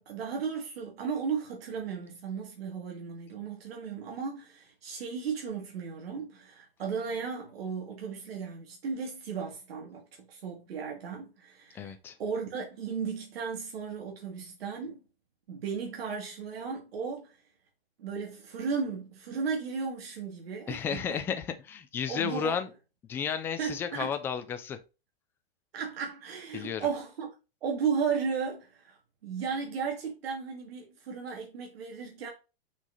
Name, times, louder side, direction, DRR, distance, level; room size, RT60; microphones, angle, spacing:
voice 1, 0.0-11.9 12.2-15.0 15.5-17.4 18.0-21.2 22.1-22.6 23.6-24.1 25.7-27.3 27.6-32.3, right 6 dB, 75° right, 2.6 m, -35 dB
voice 2, 11.7-12.2 20.7-22.7 23.1-24.8 26.5-26.9, left 7 dB, 10° left, 0.3 m, -33 dB
6.1 x 5.6 x 4.1 m
hypercardioid pair, 155°, 30 cm